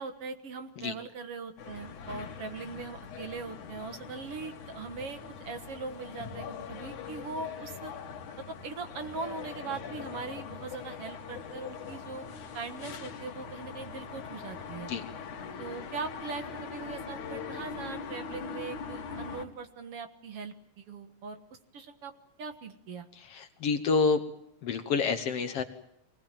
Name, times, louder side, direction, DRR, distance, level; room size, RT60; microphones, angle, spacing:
voice 1, 0.0-7.9 8.5-12.3 12.5-14.9 15.6-21.4 21.7-22.1 22.4-23.1, right 4 dB, 55° right, 8 dB, 2.2 m, -40 dB
sound 1, 1.6-19.5, left 6 dB, 85° left, 3.3 m, -42 dB
voice 2, 23.2-24.2 24.6-25.6, left 4 dB, 60° left, 9 dB, 2.0 m, -28 dB
25.0 x 19.5 x 9.0 m, 0.78 s
omnidirectional pair, 3.4 m